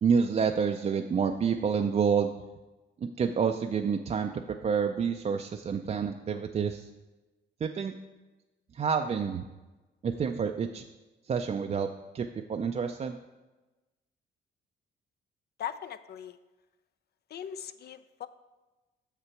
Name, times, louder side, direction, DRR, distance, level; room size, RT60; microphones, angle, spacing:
voice 1, 0.0-2.3 3.0-6.9 7.6-7.9 8.7-9.4 10.0-10.8 11.3-11.9 12.1-13.2, right 6 dB, 35° right, 5 dB, 0.4 m, -28 dB
voice 2, 15.6-16.4 17.3-18.3, left 9 dB, 55° left, 12 dB, 0.4 m, -39 dB
6.8 x 6.6 x 4.5 m, 1.1 s
cardioid pair, 90°, 20 cm